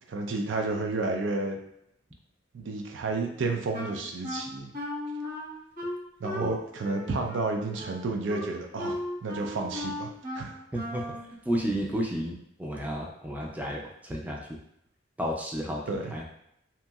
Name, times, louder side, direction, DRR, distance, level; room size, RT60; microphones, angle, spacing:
voice 1, 0.1-1.6 2.5-4.7 6.2-10.5 15.9-16.1, right 3 dB, 85° right, 3 dB, 0.4 m, -31 dB
Wind instrument woodwind instrument, 3.7-11.3, left 1 dB, 45° right, 1.2 m, -37 dB
voice 2, 10.7-11.2 11.5-14.6 15.2-15.8 16.1-16.3, equal, 10° right, -1 dB, 0.4 m, -32 dB
2.9 x 2.6 x 2.3 m, 0.76 s
head